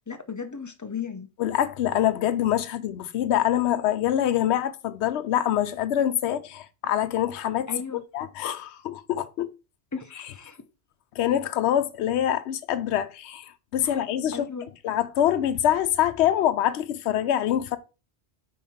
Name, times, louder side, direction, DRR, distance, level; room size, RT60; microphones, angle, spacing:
voice 1, 0.1-1.3 7.7-8.0 9.9-10.6 13.8-14.0 14.3-14.7, left 6 dB, 25° left, 0.4 m, -35 dB
voice 2, 1.4-7.7 8.1-9.5 11.2-14.4 14.8-17.8, left 11 dB, 75° left, 0.9 m, -25 dB
5.4 x 4.1 x 4.2 m
omnidirectional pair, 1.2 m